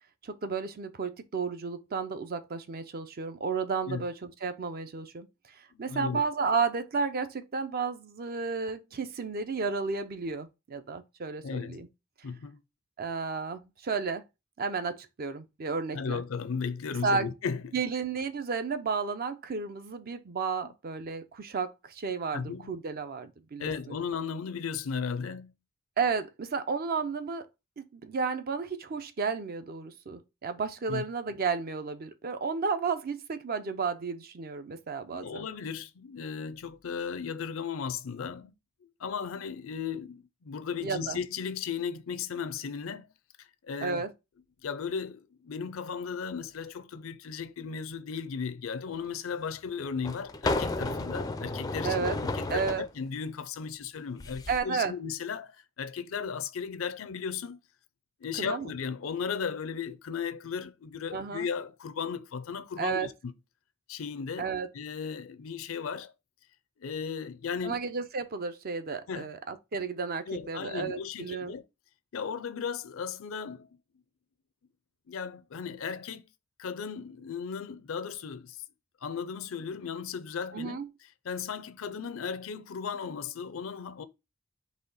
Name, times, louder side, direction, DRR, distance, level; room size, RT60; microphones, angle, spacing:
voice 1, 0.2-5.3 5.5-11.9 13.0-14.2 14.6-16.2 17.0-17.3 17.7-23.7 26.0-27.4 27.8-35.5 40.8-41.2 43.8-44.1 51.8-52.2 52.5-52.9 54.5-54.9 58.4-58.7 61.1-61.5 62.8-63.1 64.4-64.7 67.6-71.5 80.5-80.9, right 5 dB, 50° right, 0.5 m, -32 dB
voice 2, 5.9-6.2 11.4-11.8 12.2-12.6 15.9-17.8 22.3-22.7 23.6-25.5 30.9-31.0 35.1-38.5 38.8-43.1 43.4-44.0 44.6-57.6 58.2-63.3 63.9-66.1 66.8-67.8 69.1-69.3 70.3-71.6 72.1-73.7 75.1-76.2 76.6-78.6 79.0-80.8 81.2-84.0, left 6 dB, 75° left, 0.5 m, -36 dB
sound 1, 48.9-49.0 50.0-52.9 54.2-54.6, left 2 dB, 20° left, 0.4 m, -32 dB
4.2 x 2.9 x 3.9 m
head